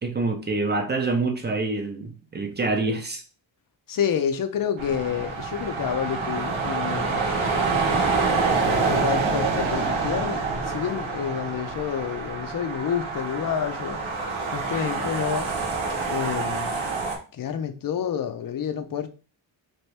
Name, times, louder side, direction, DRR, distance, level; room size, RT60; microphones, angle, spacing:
voice 1, 0.0-3.2, right 3 dB, 25° right, 0.5 m, -26 dB
voice 2, 3.9-7.3 8.9-14.0 14.5-15.5 16.1-16.8 17.3-19.1, left 8 dB, 45° left, 0.5 m, -29 dB
sound 1, 4.8-17.2, right 4 dB, 85° right, 0.9 m, -26 dB
3.0 x 2.6 x 3.2 m
wide cardioid pair, 145°, 47 cm